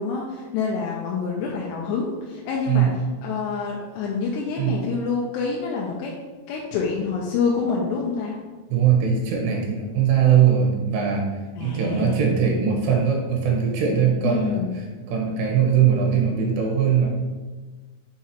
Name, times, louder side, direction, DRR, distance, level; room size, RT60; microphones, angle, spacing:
voice 1, 0.0-2.9 3.2-6.1 6.5-8.4 11.6-12.3 14.2-14.7, left 5 dB, 85° left, -2 dB, 2.8 m, -27 dB
voice 2, 8.7-11.3 11.6-14.6 15.1-17.1, right 7 dB, 80° right, 0 dB, 3.2 m, -20 dB
6.1 x 5.6 x 2.9 m, 1.3 s
omnidirectional pair, 5.0 m